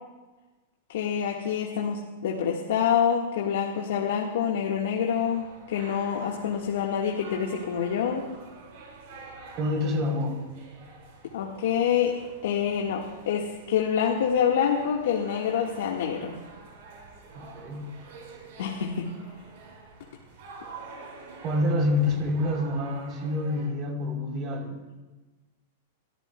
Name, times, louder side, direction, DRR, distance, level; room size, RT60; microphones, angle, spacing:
voice 1, 0.9-8.3 11.3-12.1 12.4-16.3 18.6-19.1, left 8 dB, 75° left, 0 dB, 1.5 m, -26 dB
sound 1, 5.0-23.7, right 4 dB, 65° right, 4.8 m, -47 dB
voice 2, 9.6-10.4 17.3-17.9 21.4-24.8, left 2 dB, 35° right, 2 dB, 3.3 m, -27 dB
27.5 x 14.0 x 2.2 m, 1.2 s
hypercardioid pair, 130°, 0 cm